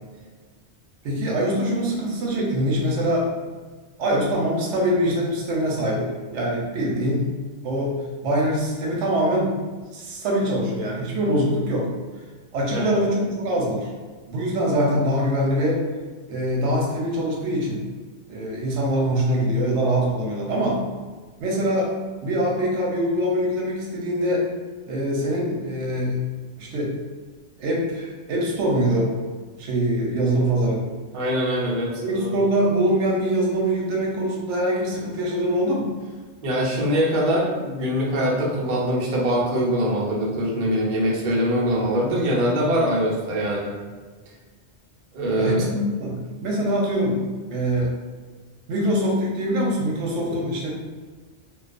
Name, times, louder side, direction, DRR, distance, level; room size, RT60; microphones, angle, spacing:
voice 1, 1.0-3.3 4.0-6.1 6.3-7.3 7.6-7.9 8.2-9.5 9.9-11.9 12.5-13.9 14.3-15.8 16.3-17.8 18.3-20.8 21.4-21.9 22.2-24.5 24.9-26.2 26.6-26.9 27.6-29.2 29.6-30.8 32.0-35.9 45.3-47.2 47.5-47.9 48.7-50.7, equal, 85° right, -2 dB, 0.9 m, -23 dB
voice 2, 31.1-32.4 36.4-43.8 45.1-45.7, equal, 55° right, -4 dB, 0.7 m, -23 dB
2.3 x 2.2 x 2.4 m, 1.4 s
omnidirectional pair, 1.2 m